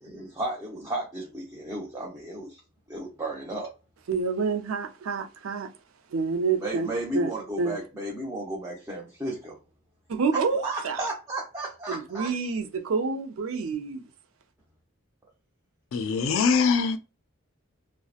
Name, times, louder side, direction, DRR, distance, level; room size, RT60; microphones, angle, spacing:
voice 1, 0.0-2.6 2.9-3.7 6.6-9.6 10.3-12.3, right 2 dB, 15° right, 0.5 m, -34 dB
voice 2, 4.1-5.7 6.1-6.9 7.1-7.3 7.6-7.8 10.1-11.1 11.9-14.0, right 4 dB, 75° right, 0.4 m, -28 dB
voice 3, 15.9-17.0, left 5 dB, 70° left, 0.4 m, -23 dB
2.7 x 2.1 x 2.3 m
head